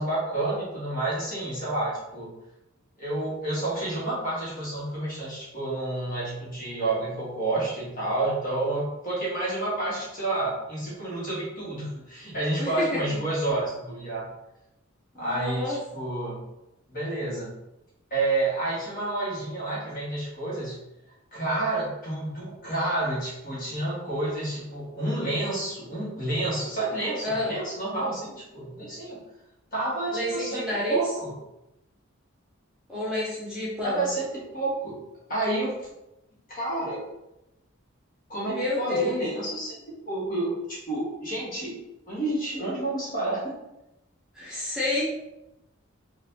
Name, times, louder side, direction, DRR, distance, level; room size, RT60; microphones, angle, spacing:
voice 1, 0.0-2.3 3.0-14.2 15.2-16.4 16.9-17.5 18.1-20.8 21.3-29.2 29.7-30.6 30.9-31.3 33.8-35.0 35.3-35.9 36.5-37.0 38.3-39.8 40.1-41.7 42.1-43.5, right 2 dB, 40° left, -7 dB, 1.5 m, -29 dB
voice 2, 12.6-13.2 15.1-15.8 27.2-27.5 30.1-31.0 32.9-34.1 38.5-39.2 44.3-45.0, left 2 dB, 5° right, -9 dB, 0.9 m, -29 dB
4.0 x 2.6 x 2.7 m, 0.90 s
head